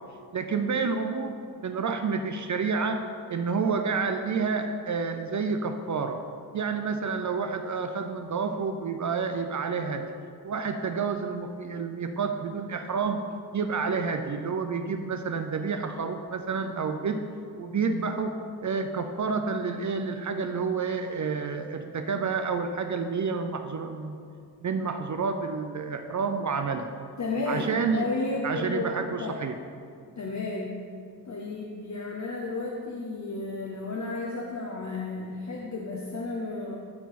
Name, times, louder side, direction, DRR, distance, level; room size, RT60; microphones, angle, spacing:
voice 1, 0.3-1.3 1.6-3.0 3.3-6.2 6.5-10.0 10.4-13.2 13.5-17.2 17.6-18.4 18.6-24.2 24.6-26.9 27.5-28.1 28.4-29.6, right 5 dB, 50° right, 6 dB, 0.5 m, -29 dB
voice 2, 27.2-28.9 29.2-29.4 30.2-30.8 31.2-36.8, left 3 dB, 50° left, -2 dB, 0.9 m, -33 dB
12.5 x 4.5 x 4.1 m, 2.2 s
wide cardioid pair, 120°, 38 cm